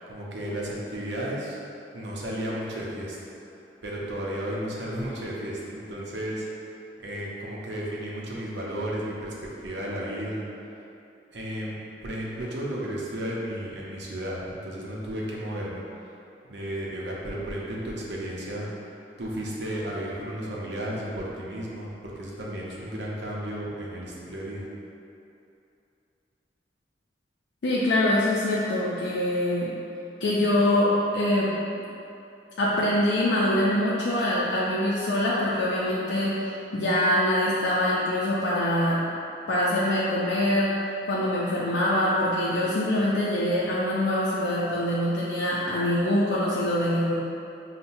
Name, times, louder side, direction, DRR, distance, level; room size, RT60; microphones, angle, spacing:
voice 1, 0.1-1.6 1.9-3.2 3.8-6.5 7.0-10.4 11.3-11.7 12.0-15.8 16.5-18.7 19.2-24.7, right 1 dB, 75° right, -4 dB, 0.7 m, -33 dB
voice 2, 27.6-29.7 30.2-31.5 32.6-39.0 39.5-47.1, left 1 dB, 80° left, -7 dB, 0.4 m, -24 dB
5.6 x 2.2 x 2.6 m, 2.7 s
head